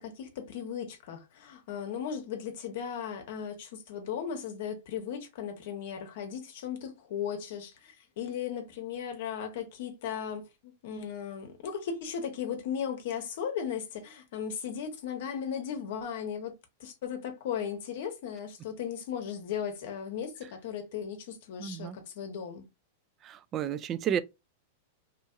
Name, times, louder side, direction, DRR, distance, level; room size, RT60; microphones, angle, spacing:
voice 1, 0.0-16.5 16.8-22.6, left 8 dB, 65° left, 0.8 m, -36 dB
voice 2, 21.6-22.0 23.2-24.2, right 9 dB, 30° right, 0.3 m, -32 dB
2.8 x 2.6 x 2.3 m
hypercardioid pair, 125°, 0 cm